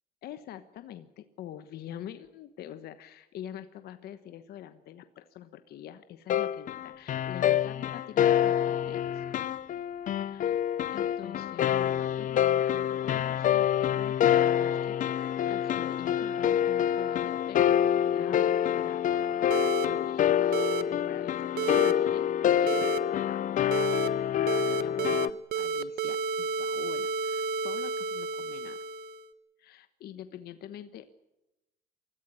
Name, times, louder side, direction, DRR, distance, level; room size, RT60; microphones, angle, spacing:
voice 1, 0.2-9.2 10.2-10.6 10.9-17.8 18.1-19.0 19.5-22.3 22.6-23.4 24.3-28.8 29.6-31.1, left 11 dB, 70° left, 10 dB, 1.2 m, -45 dB
sound 1, 6.3-25.3, left 10 dB, 50° left, 0.7 m, -26 dB
sound 2, 19.5-19.9 20.5-20.8 21.6-21.9 22.7-23.0 23.7-24.1 24.5-25.3 25.5-29.2, right 5 dB, 65° right, 1.2 m, -31 dB
24.5 x 14.0 x 10.0 m, 0.98 s
cardioid pair, 110°, 17 cm